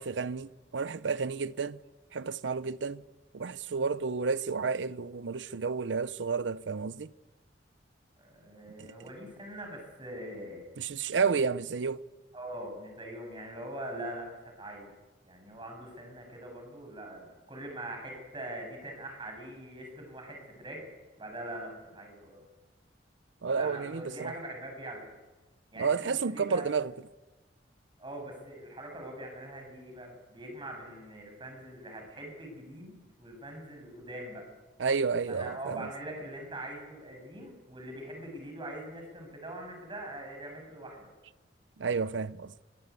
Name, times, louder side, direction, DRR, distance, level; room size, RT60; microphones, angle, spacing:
voice 1, 0.0-1.8 2.1-3.0 3.3-7.1 8.8-8.9 10.8-12.0 23.4-24.3 25.8-26.9 34.8-35.9 41.8-42.5, right 5 dB, 80° right, 0.6 m, -31 dB
voice 2, 8.2-10.6 12.3-14.9 15.2-20.8 21.2-22.4 23.5-25.0 25.7-26.6 28.0-34.4 35.3-41.1, right 1 dB, 25° right, 7.2 m, -43 dB
22.5 x 17.0 x 8.3 m
head